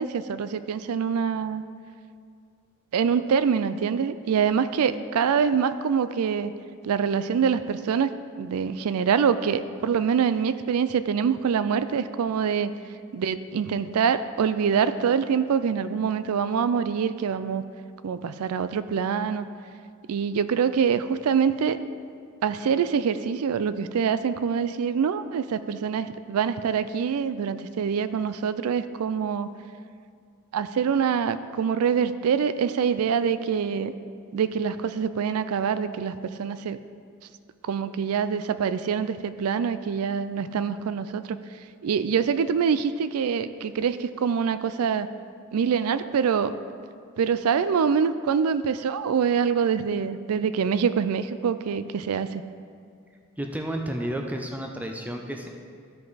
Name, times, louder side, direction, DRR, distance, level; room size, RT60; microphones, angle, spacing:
voice 1, 0.0-1.6 2.9-6.5 6.8-8.1 8.4-12.7 13.1-17.6 18.0-19.4 20.1-21.8 22.4-29.5 30.5-33.9 34.3-36.8 37.7-41.4 41.8-45.1 45.5-46.5 47.2-52.4, right 6 dB, 85° right, 13 dB, 0.4 m, -25 dB
voice 2, 53.4-55.5, right 1 dB, 5° right, 2 dB, 0.6 m, -31 dB
14.0 x 5.3 x 4.1 m, 2.2 s
head